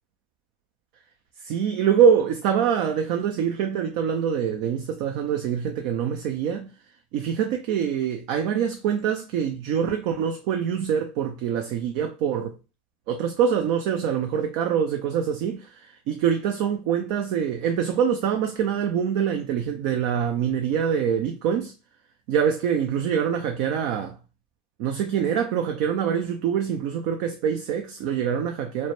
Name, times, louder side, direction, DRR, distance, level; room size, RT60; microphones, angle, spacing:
voice 1, 1.4-6.7 7.1-12.5 13.1-21.7 22.3-24.2 24.8-28.9, right 8 dB, 60° right, 0.3 m, -24 dB
2.1 x 2.0 x 2.9 m
hypercardioid pair, 95°, 0 cm